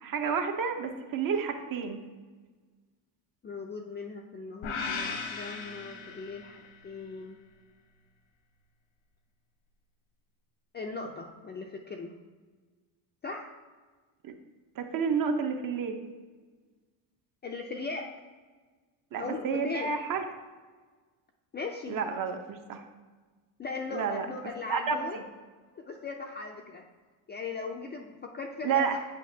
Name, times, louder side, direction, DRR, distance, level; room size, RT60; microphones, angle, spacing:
voice 1, 0.0-2.0 14.2-14.3 14.8-16.0 19.1-20.2 21.9-22.8 23.9-25.0 28.6-29.0, right 6 dB, 45° right, 6 dB, 0.8 m, -30 dB
voice 2, 3.4-7.4 10.7-12.1 13.2-13.5 17.4-18.1 19.2-19.9 21.5-22.0 23.6-25.3 25.7-26.8 27.3-29.0, left 4 dB, 25° left, 2 dB, 0.4 m, -38 dB
sound 1, 4.6-6.8, left 5 dB, 85° left, 1.1 m, -37 dB
8.4 x 4.9 x 2.7 m, 1.4 s
cardioid pair, 115°, 45 cm